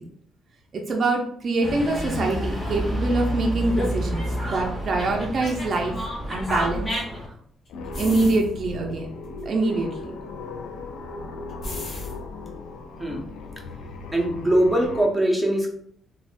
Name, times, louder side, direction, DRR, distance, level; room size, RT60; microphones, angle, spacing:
voice 1, 0.7-5.9 6.3-6.9 8.0-9.1 9.5-9.9, right 2 dB, 50° right, 1 dB, 0.5 m, -24 dB
Dog, 1.6-7.3, equal, 20° left, 1.2 m, -28 dB
sound 1, 5.4-5.5 6.6-6.8 7.0-7.1 7.7-8.5 9.2-9.4 11.5-12.1, left 2 dB, 55° left, 0.9 m, -35 dB
sound 2, 7.7-15.1, left 3 dB, 85° left, 0.3 m, -37 dB
voice 2, 14.1-15.7, right 1 dB, 10° right, -1 dB, 0.8 m, -21 dB
3.2 x 2.2 x 2.5 m, 0.65 s
cardioid pair, 90°, 0 cm